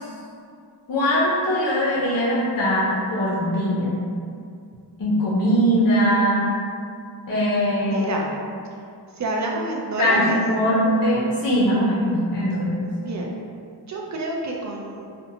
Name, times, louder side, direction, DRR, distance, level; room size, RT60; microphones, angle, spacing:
voice 1, 0.9-3.9 5.0-6.5 7.3-8.1 10.0-12.9, equal, 55° left, -7 dB, 0.6 m, -21 dB
voice 2, 7.9-8.3 9.2-10.4 13.0-13.3 13.9-15.1, right 2 dB, 45° right, -1 dB, 0.4 m, -27 dB
2.6 x 2.1 x 2.7 m, 2.4 s
wide cardioid pair, 75°, 42 cm